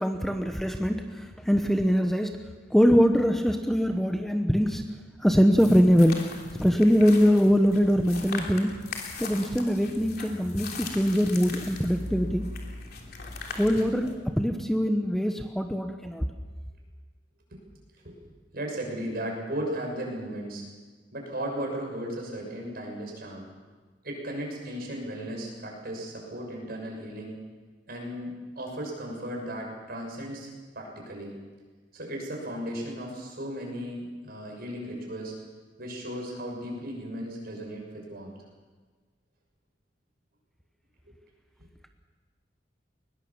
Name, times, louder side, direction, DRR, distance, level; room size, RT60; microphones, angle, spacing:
voice 1, 0.0-4.9 5.2-8.8 9.2-12.5 13.5-16.3, equal, ahead, 6 dB, 0.9 m, -23 dB
sound 1, 5.6-14.1, left 3 dB, 60° left, 3.2 m, -39 dB
voice 2, 18.0-20.6 21.1-23.5 24.0-27.4 27.9-30.5 30.7-31.3 31.9-35.3 35.8-38.3, right 1 dB, 55° right, 0 dB, 6.5 m, -36 dB
20.5 x 20.5 x 7.2 m, 1.4 s
head